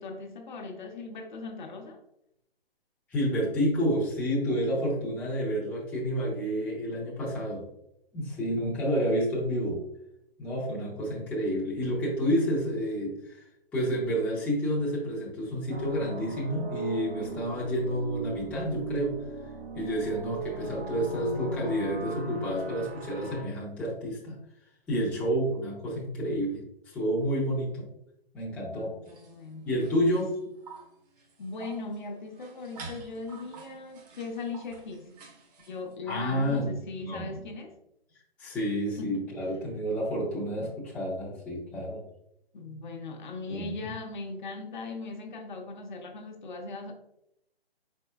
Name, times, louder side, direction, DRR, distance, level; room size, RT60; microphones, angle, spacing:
voice 1, 0.0-2.0 28.7-29.7 31.4-35.1 35.7-37.8 39.0-39.3 42.5-46.9, left 3 dB, 50° left, 0.8 m, -39 dB
voice 2, 3.1-7.6 8.1-9.8 10.4-13.4 13.7-19.2 19.8-24.4 24.9-27.9 28.3-28.9 29.7-30.4 36.1-36.7 37.0-37.4 38.4-42.0 43.5-43.7, equal, 5° left, 0.6 m, -29 dB
sound 1, 15.7-23.4, right 2 dB, 80° right, 0.9 m, -38 dB
sound 2, 29.0-35.9, right 4 dB, 40° right, 1.0 m, -49 dB
4.3 x 4.2 x 2.3 m
hypercardioid pair, 140°, 31 cm